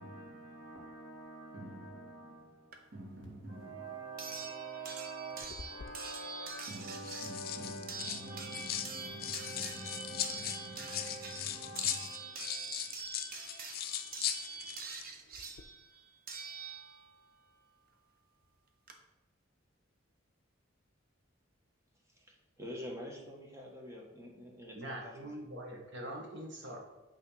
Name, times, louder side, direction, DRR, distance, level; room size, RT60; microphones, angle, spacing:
voice 1, 0.0-13.1, right 2 dB, 85° right, 2.0 m, -46 dB
sound 1, 2.7-2.8 4.2-17.2 18.4-18.5 18.9-19.0, right 4 dB, 50° right, 0.9 m, -45 dB
sound 2, 5.4-5.9 6.8-8.9 9.2-15.1 15.3-15.6, left 10 dB, 50° left, 0.5 m, -39 dB
voice 2, 22.1-25.4, left 1 dB, 15° right, 1.4 m, -47 dB
voice 3, 24.7-26.8, right 1 dB, 65° right, 1.6 m, -43 dB
8.6 x 3.3 x 5.7 m
head